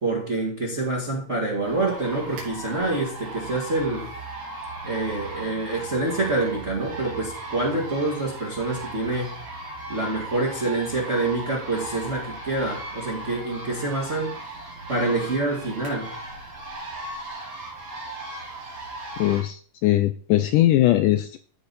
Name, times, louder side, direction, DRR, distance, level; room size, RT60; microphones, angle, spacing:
voice 1, 0.0-4.1 4.8-9.4 9.9-14.3 14.9-16.2, right 2 dB, 35° right, -2 dB, 1.1 m, -26 dB
sound 1, 1.6-19.4, right 2 dB, 85° right, 4.7 m, -37 dB
voice 2, 19.2-21.4, left 14 dB, 80° left, 9 dB, 1.9 m, -20 dB
15.0 x 5.0 x 4.1 m, 0.42 s
omnidirectional pair, 4.1 m